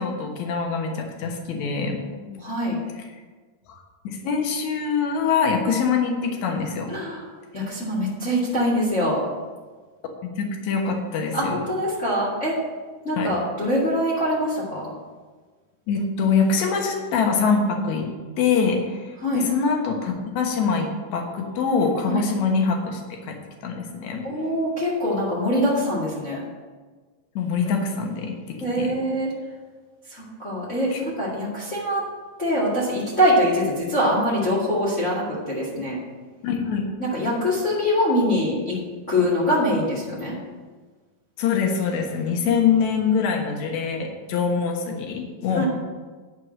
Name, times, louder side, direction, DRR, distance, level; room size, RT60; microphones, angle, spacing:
voice 1, 0.0-2.0 3.7-6.9 10.2-11.6 13.2-13.3 15.9-18.1 18.4-23.4 23.6-24.3 26.3-26.5 27.4-28.9 30.9-31.0 36.4-36.9 41.4-45.6, left 5 dB, 60° left, 2 dB, 2.2 m, -24 dB
voice 2, 1.8-2.8 6.9-7.2 7.5-9.2 11.3-12.6 13.0-14.9 19.2-19.4 22.1-22.2 24.2-26.4 28.6-29.3 30.1-32.0 32.4-36.0 37.0-38.8 39.1-40.3 45.5-45.6, equal, 30° left, -5 dB, 1.6 m, -24 dB
11.0 x 4.8 x 7.4 m, 1.4 s
omnidirectional pair, 4.4 m